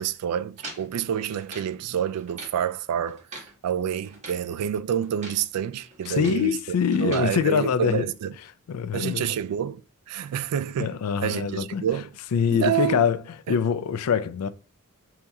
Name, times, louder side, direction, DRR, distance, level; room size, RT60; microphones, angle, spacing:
voice 1, 0.0-8.3 8.9-9.8 10.1-11.0 11.2-12.1 12.5-13.0, right 9 dB, 90° right, 0.3 m, -28 dB
sound 1, 0.6-1.8 2.2-2.6 3.1-3.6 4.0-4.5 5.0-5.5 5.8-6.5 6.9-7.3, right 2 dB, 30° right, 1.2 m, -42 dB
voice 2, 6.1-8.1 8.7-9.3 10.8-11.9 12.3-13.2 13.5-14.5, left 7 dB, 70° left, 0.4 m, -24 dB
5.3 x 2.9 x 2.3 m
head